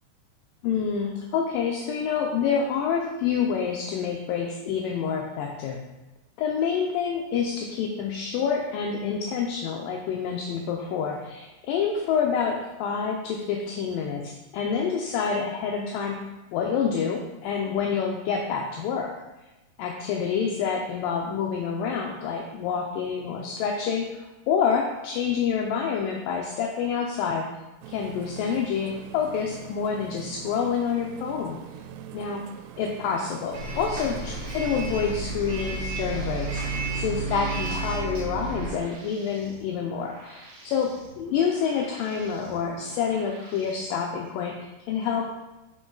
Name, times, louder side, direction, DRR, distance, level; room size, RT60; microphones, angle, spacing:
voice 1, 0.6-5.8 6.4-16.2 16.5-19.1 19.8-27.5 27.9-31.6 32.1-32.5 32.8-36.6 36.9-45.3, left 6 dB, 85° left, 1 dB, 2.0 m, -27 dB
sound 1, 27.8-35.4, right 8 dB, 90° right, 2.6 m, -43 dB
Bus, 33.5-38.8, right 3 dB, 55° right, 2.4 m, -31 dB
sound 2, 36.1-43.8, right 2 dB, 75° right, 1.5 m, -49 dB
6.0 x 5.8 x 3.9 m, 1.0 s
omnidirectional pair, 4.6 m